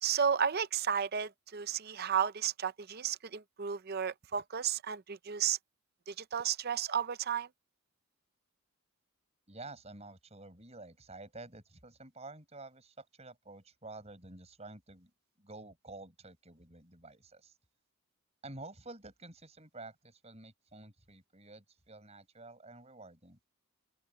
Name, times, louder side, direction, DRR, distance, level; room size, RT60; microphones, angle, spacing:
voice 1, 0.0-5.6 6.1-7.5, right 8 dB, 45° right, 0.6 m, -33 dB
voice 2, 9.5-15.1 15.4-17.5 18.4-23.4, right 2 dB, 30° right, 7.4 m, -50 dB
open air
head